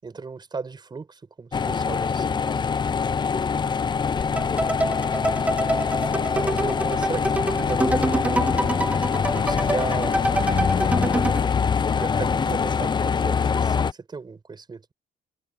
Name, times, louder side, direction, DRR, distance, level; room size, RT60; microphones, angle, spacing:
voice 1, 0.0-2.6 6.4-8.7 9.3-11.3 11.8-14.9, right 4 dB, 25° right, 5.3 m, -35 dB
sound 1, 1.5-13.9, left 6 dB, 25° left, 0.6 m, -24 dB
voice 2, 3.3-3.4, right 19 dB, 90° right, 7.6 m, -50 dB
sound 2, 4.4-11.5, right 1 dB, 10° right, 1.1 m, -26 dB
cardioid pair, 110°, 17 cm